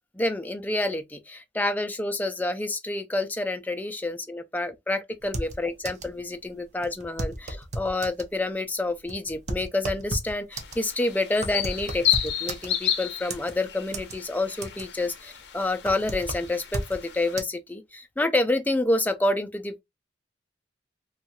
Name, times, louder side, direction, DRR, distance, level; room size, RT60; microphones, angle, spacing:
voice 1, 0.1-19.8, left 2 dB, 10° left, 0.3 m, -28 dB
sound 1, 5.2-6.2 6.4-6.5 6.8-8.3 8.9-12.9 13.3-14.2 14.4-15.0 15.4-17.0 17.4-17.5, right 1 dB, 40° right, 0.6 m, -34 dB
sound 2, 10.5-17.3, left 10 dB, 70° left, 0.5 m, -32 dB
2.9 x 2.3 x 2.8 m
head